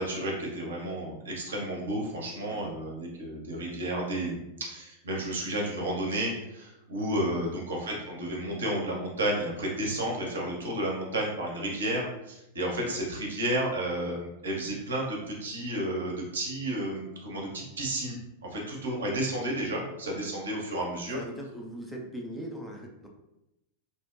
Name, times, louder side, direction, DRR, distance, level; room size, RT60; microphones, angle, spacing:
voice 1, 0.0-21.2, right 1 dB, 70° right, -2 dB, 0.6 m, -32 dB
voice 2, 2.4-2.7 7.4-7.6 12.7-13.0 21.1-23.1, equal, ahead, -2 dB, 0.4 m, -41 dB
2.6 x 2.1 x 2.4 m, 0.89 s
figure-of-eight pair, 90°, 0 cm